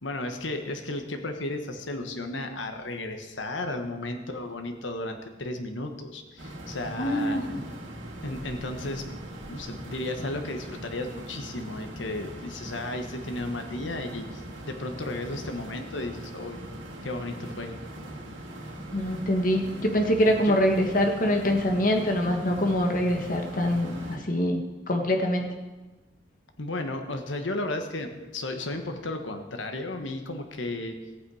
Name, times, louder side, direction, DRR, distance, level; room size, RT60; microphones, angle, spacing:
voice 1, 0.0-7.4 8.2-9.0 9.5-16.6 17.0-17.7 20.4-20.6 26.6-31.0, left 2 dB, 85° left, 5 dB, 1.4 m, -34 dB
sound 1, 6.4-24.2, right 1 dB, 85° right, 2.3 m, -41 dB
voice 2, 7.0-7.4 18.9-24.6 24.9-25.5, equal, 45° left, 3 dB, 1.6 m, -24 dB
15.0 x 8.9 x 4.9 m, 1.2 s
head